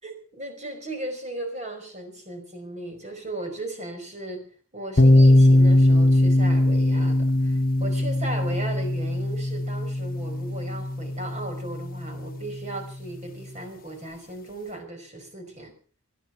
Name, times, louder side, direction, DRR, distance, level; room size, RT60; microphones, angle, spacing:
voice 1, 0.0-4.5 4.7-15.7, right 1 dB, 30° right, 5 dB, 5.1 m, -36 dB
sound 1, 5.0-12.7, left 1 dB, 40° left, 1.2 m, -20 dB
19.0 x 12.5 x 5.9 m, 0.42 s
head